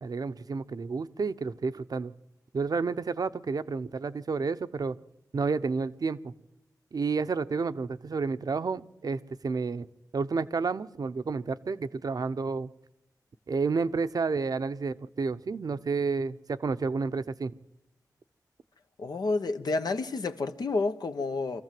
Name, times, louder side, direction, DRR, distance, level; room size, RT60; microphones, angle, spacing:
voice 1, 0.0-2.1 2.5-5.0 5.3-6.3 6.9-9.9 10.1-12.7 13.5-17.5, right 4 dB, 65° right, 0.8 m, -30 dB
voice 2, 19.0-21.6, left 3 dB, 75° left, 1.1 m, -30 dB
25.0 x 14.5 x 7.7 m
cardioid pair, 55°, 7 cm